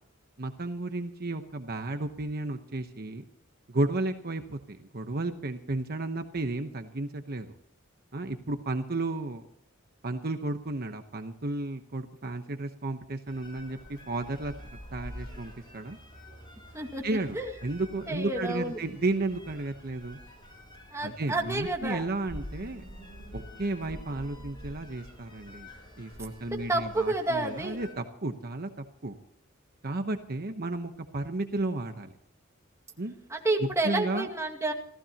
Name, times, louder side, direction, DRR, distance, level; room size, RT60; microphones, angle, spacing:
voice 1, 0.4-3.2 3.7-7.5 8.1-9.4 10.0-16.0 17.0-20.2 21.0-22.8 23.3-25.7 26.0-28.7 29.0-29.2 29.8-32.1 33.0-33.1 33.8-34.3, right 2 dB, 50° right, 7 dB, 1.0 m, -33 dB
sound 1, 13.3-27.9, left 1 dB, 25° left, 7.0 m, -47 dB
voice 2, 18.1-18.8 20.9-22.1 26.5-27.8 33.3-34.7, right 2 dB, 15° right, 1 dB, 2.1 m, -30 dB
28.0 x 15.5 x 2.9 m, 0.70 s
head